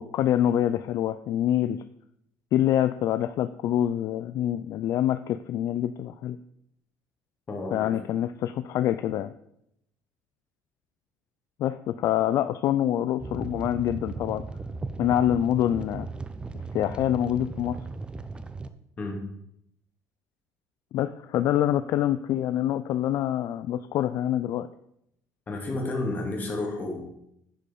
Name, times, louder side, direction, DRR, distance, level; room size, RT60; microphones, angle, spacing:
voice 1, 0.0-1.8 2.5-6.4 7.7-9.3 11.6-14.4 15.0-16.1 16.7-17.8 20.9-24.7, left 11 dB, 55° left, 12 dB, 0.4 m, -26 dB
voice 2, 7.5-7.9 19.0-19.2 25.5-27.0, left 2 dB, 25° left, 0 dB, 2.4 m, -31 dB
sound 1, 13.2-18.7, right 3 dB, 15° right, 0.5 m, -37 dB
10.5 x 5.4 x 5.4 m, 0.76 s
cardioid pair, 140°, 7 cm